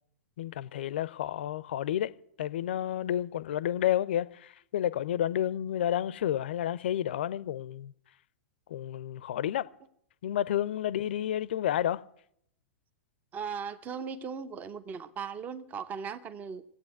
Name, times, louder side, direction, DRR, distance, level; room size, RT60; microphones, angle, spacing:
voice 1, 0.4-2.1 2.4-7.9 8.7-9.7 10.2-12.0, left 11 dB, 55° left, 0.6 m, -30 dB
voice 2, 13.3-16.6, right 6 dB, 25° right, 0.9 m, -38 dB
18.0 x 8.4 x 9.5 m
figure-of-eight pair, 100°, 7 cm